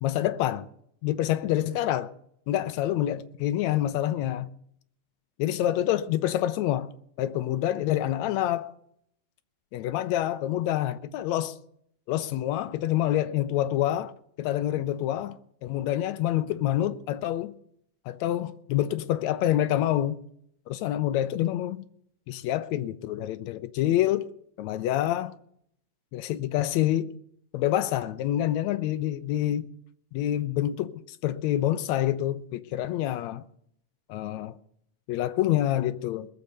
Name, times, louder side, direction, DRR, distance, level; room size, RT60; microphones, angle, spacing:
voice 1, 0.0-0.7 1.0-2.1 2.5-4.5 5.4-6.9 7.2-8.7 9.7-11.6 12.1-14.1 14.4-17.5 18.1-20.2 20.7-21.9 22.3-24.3 24.6-25.3 26.1-27.1 27.5-29.7 30.1-33.4 34.1-34.5 35.1-36.3, left 12 dB, 75° left, 1.7 m, -27 dB
21.0 x 7.1 x 6.6 m
omnidirectional pair, 3.6 m